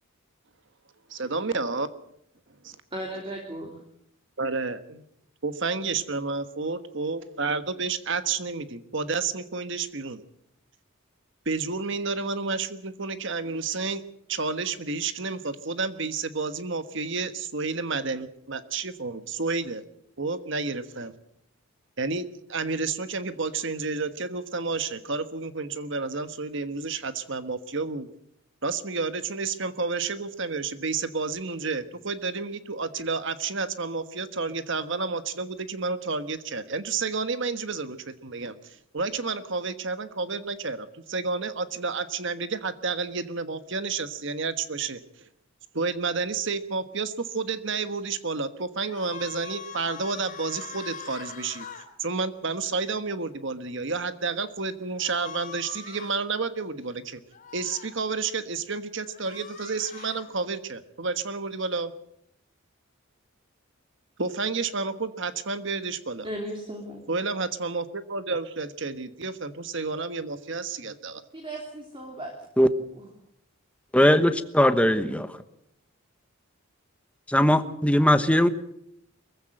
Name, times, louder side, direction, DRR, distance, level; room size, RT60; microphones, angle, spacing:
voice 1, 1.1-1.9 2.6-2.7 4.4-5.0 5.4-10.2 11.4-14.0 14.3-19.8 20.2-21.1 22.0-28.1 28.6-45.3 45.7-51.7 52.0-57.2 57.5-61.9 64.2-66.3 67.1-71.2, right 4 dB, 60° right, 1.4 m, -30 dB
voice 2, 2.9-3.8 66.2-67.0 71.3-72.3 72.9-73.1, right 1 dB, 25° right, 3.1 m, -36 dB
sound 1, 48.8-51.9 55.0-56.2 57.3-57.9 59.1-60.3, left 7 dB, 40° left, 3.8 m, -42 dB
voice 3, 73.9-75.3 77.3-78.5, left 1 dB, 5° left, 1.1 m, -20 dB
23.0 x 15.5 x 7.9 m
head